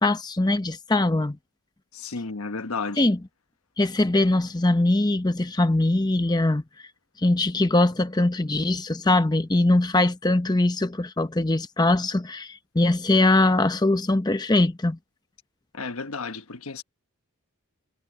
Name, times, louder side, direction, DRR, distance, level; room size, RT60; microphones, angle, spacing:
voice 1, 0.0-1.4 3.0-3.2 3.8-6.6 7.2-15.0, left 2 dB, 20° left, 0.7 m, -22 dB
voice 2, 1.9-3.1 15.7-16.8, left 4 dB, 70° left, 1.2 m, -32 dB
head